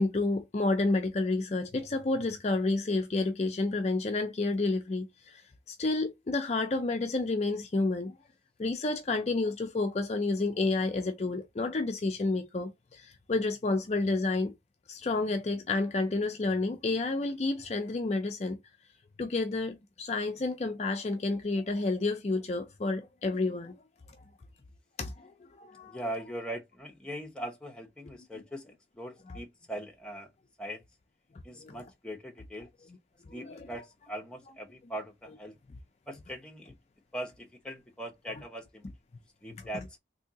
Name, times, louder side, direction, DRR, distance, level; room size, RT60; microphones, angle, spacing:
voice 1, 0.0-5.4 5.7-8.2 8.6-14.5 14.9-18.6 19.2-23.7 25.0-26.0 29.3-29.4 31.6-31.8 33.3-33.7 39.6-39.7, left 3 dB, 35° left, 0.4 m, -30 dB
voice 2, 25.9-30.3 30.6-30.8 31.4-32.7 33.3-35.5 36.1-36.7 37.1-38.9 39.4-39.9, right 1 dB, 5° left, 0.8 m, -41 dB
3.5 x 2.7 x 2.8 m
head